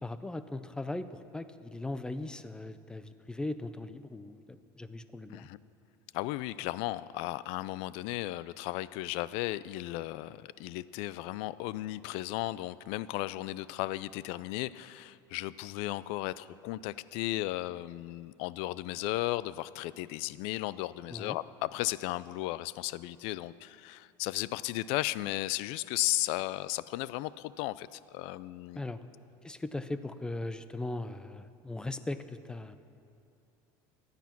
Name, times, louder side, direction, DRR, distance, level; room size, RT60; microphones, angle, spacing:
voice 1, 0.0-4.4 4.8-5.5 21.1-21.4 28.8-29.0 29.4-32.8, left 2 dB, 10° left, 12 dB, 0.6 m, -38 dB
voice 2, 6.1-28.8, left 17 dB, 70° left, 18 dB, 0.4 m, -35 dB
15.5 x 10.5 x 5.9 m, 2.6 s
supercardioid pair, 125°, 10 cm